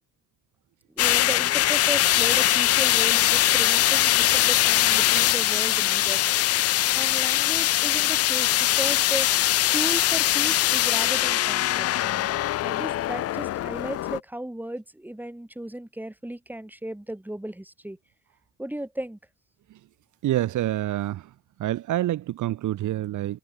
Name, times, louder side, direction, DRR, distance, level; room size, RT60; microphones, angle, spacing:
voice 1, 0.9-6.2 6.9-9.3 9.7-18.0 18.6-19.2, right 1 dB, 5° right, 4.8 m, -35 dB
sound 1, 1.0-14.2, left 14 dB, 55° left, 0.4 m, -22 dB
voice 2, 20.2-21.2 21.6-23.4, right 14 dB, 75° right, 1.6 m, -27 dB
cardioid pair, 90°, 30 cm